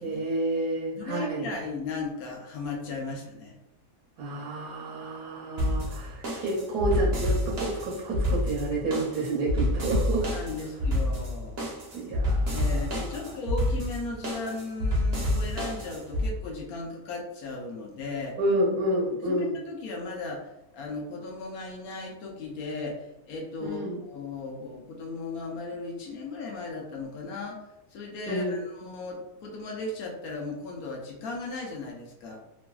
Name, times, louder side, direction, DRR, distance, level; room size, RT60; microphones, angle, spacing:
voice 1, 0.0-1.5 4.2-10.3 11.9-12.7 18.4-19.5 23.6-24.0 28.3-28.6, right 1 dB, 75° right, -4 dB, 1.1 m, -29 dB
voice 2, 1.0-3.6 10.2-11.7 12.5-18.4 19.2-32.4, left 3 dB, 70° left, -1 dB, 1.0 m, -36 dB
sound 1, 5.6-16.3, left 1 dB, 50° right, 0.8 m, -28 dB
3.0 x 2.5 x 2.2 m, 0.94 s
omnidirectional pair, 1.7 m